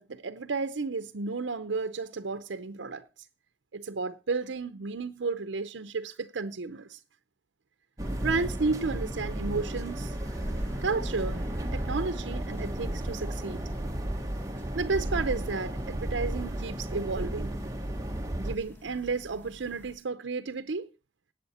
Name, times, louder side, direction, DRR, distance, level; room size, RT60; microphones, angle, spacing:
voice 1, 0.0-3.1 3.7-7.0 8.2-10.1 10.8-11.4 11.7-13.6 14.8-17.5 18.4-20.9, right 4 dB, 85° right, 0.7 m, -32 dB
sound 1, 8.0-19.9, equal, 10° left, 1.7 m, -47 dB
sound 2, 8.0-18.6, right 1 dB, 20° right, 1.0 m, -33 dB
17.0 x 8.5 x 4.2 m
head